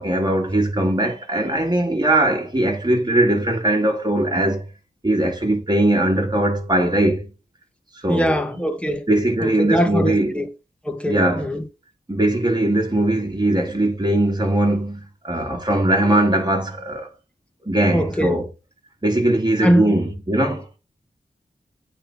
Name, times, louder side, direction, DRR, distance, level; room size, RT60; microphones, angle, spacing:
voice 1, 0.0-4.6 5.0-7.3 8.0-8.7 9.1-10.4 11.0-11.5 12.1-17.1 17.6-18.5 19.0-20.7, right 1 dB, 25° right, 3.1 m, -20 dB
voice 2, 8.1-9.1 9.4-10.5 10.8-11.6 17.9-18.4 19.6-19.9, equal, 5° left, 2.0 m, -22 dB
8.9 x 4.5 x 6.6 m
wide cardioid pair, 65°, 16 cm